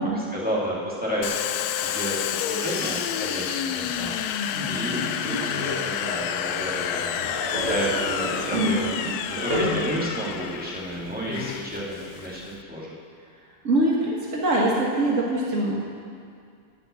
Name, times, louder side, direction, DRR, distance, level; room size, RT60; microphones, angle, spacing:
voice 1, 0.1-1.4 1.8-7.1 7.5-8.9 9.3-12.9, equal, 5° right, -7 dB, 1.4 m, -31 dB
Domestic sounds home sounds, 1.2-12.6, left 9 dB, 85° left, 1.4 m, -30 dB
Laughter, 3.9-8.3 8.6-8.7, left 2 dB, 60° left, 3.0 m, -35 dB
sound 1, 7.2-10.3 10.9-11.3 12.0-12.2, equal, 50° right, 2.7 m, -31 dB
voice 2, 8.5-9.1 13.6-15.8, right 1 dB, 75° right, -4 dB, 0.7 m, -23 dB
13.0 x 5.9 x 8.4 m, 2.2 s
omnidirectional pair, 3.6 m